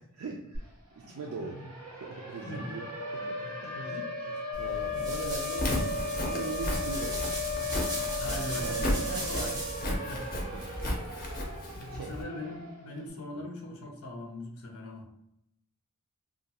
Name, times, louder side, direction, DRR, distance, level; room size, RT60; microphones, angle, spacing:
voice 1, 0.1-0.7 1.1-1.7 1.9-5.7 6.0-7.4 8.6-9.3 10.5-10.6 11.9-12.1, right 4 dB, 70° right, 0 dB, 0.4 m, -40 dB
Siren, 0.5-0.6 0.9-13.0, left 2 dB, 85° right, 0.7 m, -37 dB
voice 2, 1.0-1.7 2.5-2.8 3.2-3.9 4.9-5.3 8.1-8.9 9.1-9.6 10.1-10.3 11.8-15.1, left 1 dB, 85° left, 1 dB, 0.6 m, -41 dB
sound 1, 4.5-9.9, right 1 dB, 20° right, 0.6 m, -38 dB
Walk footsteps, 5.4-12.2, left 1 dB, 40° left, 0.6 m, -34 dB
2.4 x 2.2 x 2.8 m, 0.78 s
head